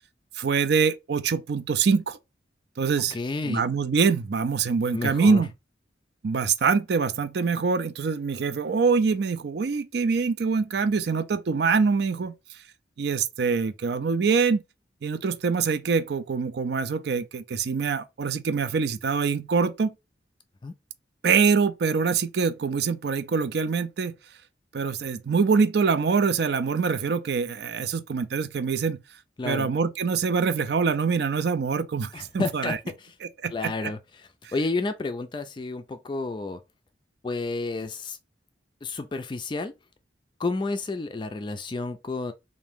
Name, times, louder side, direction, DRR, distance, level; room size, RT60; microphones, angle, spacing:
voice 1, 0.3-2.2 2.8-3.2 3.5-5.5 6.2-12.3 13.0-14.6 15.0-19.9 21.2-24.1 24.7-29.0 29.4-32.8 33.4-33.7, right 5 dB, 60° right, 0.4 m, -24 dB
voice 2, 3.1-3.7 4.9-5.4 20.6-20.7 29.4-29.7 32.1-33.2 33.5-36.6 37.2-38.2 38.8-39.7 40.4-42.3, left 3 dB, 25° left, 0.3 m, -31 dB
3.6 x 2.6 x 3.5 m
head